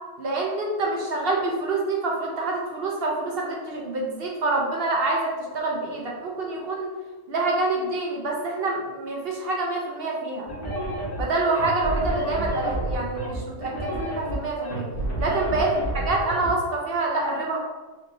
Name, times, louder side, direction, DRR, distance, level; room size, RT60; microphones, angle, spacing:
voice 1, 0.2-6.9 7.3-10.5 11.2-14.9 15.2-15.7 16.0-17.6, right 2 dB, 55° right, -1 dB, 0.7 m, -26 dB
sound 1, 10.5-16.5, right 1 dB, 25° left, 1.0 m, -29 dB
3.6 x 2.7 x 4.0 m, 1.3 s
omnidirectional pair, 1.7 m